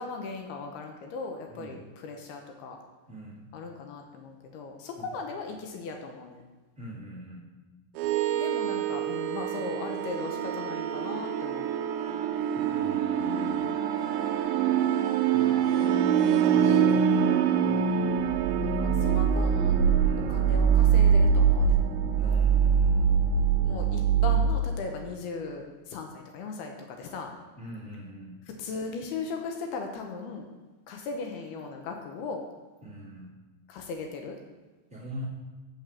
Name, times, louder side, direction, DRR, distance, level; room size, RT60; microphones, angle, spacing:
voice 1, 0.0-2.8 3.5-6.4 8.4-11.7 18.6-19.7 20.3-21.8 23.6-27.3 28.6-30.5 30.9-32.4 33.7-34.4, left 4 dB, 80° left, 3 dB, 2.7 m, -38 dB
voice 2, 3.1-3.4 5.0-5.1 6.7-7.4 12.5-13.7 15.3-15.8 16.4-18.0 20.0-20.4 22.1-23.1 27.5-28.4 32.8-33.4 34.9-35.3, equal, 30° right, -6 dB, 1.4 m, -43 dB
sound 1, 8.0-24.5, right 7 dB, 80° right, 2.5 m, -24 dB
6.7 x 6.4 x 7.2 m, 1.3 s
omnidirectional pair, 4.8 m